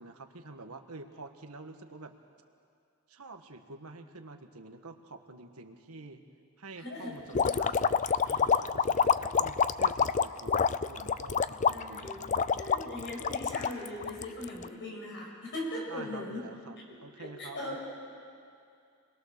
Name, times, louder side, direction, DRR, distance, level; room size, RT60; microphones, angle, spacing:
voice 1, 0.0-2.1 3.1-6.2 6.6-12.3 15.9-17.8, right 3 dB, 80° right, 6 dB, 1.5 m, -47 dB
voice 2, 6.8-7.1 11.7-12.2 12.6-16.5 16.9-17.8, left 1 dB, 55° left, -1 dB, 6.4 m, -39 dB
sound 1, 7.3-14.7, left 6 dB, 35° left, 0.5 m, -27 dB
27.5 x 21.5 x 6.7 m, 2.4 s
head